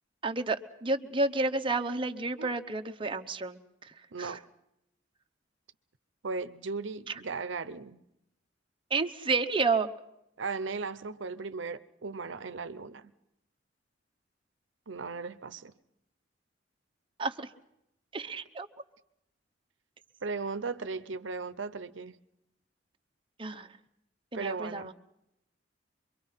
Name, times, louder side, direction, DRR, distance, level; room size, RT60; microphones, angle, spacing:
voice 1, 0.2-4.4 7.1-7.2 8.9-9.9 17.2-17.5 18.1-18.7 23.4-23.7 24.3-24.9, right 3 dB, 25° right, 0.9 m, -31 dB
voice 2, 4.1-4.5 6.2-8.0 10.4-13.1 14.9-15.7 20.2-22.2 24.3-24.9, right 4 dB, 80° right, 0.8 m, -37 dB
25.0 x 23.0 x 5.7 m
head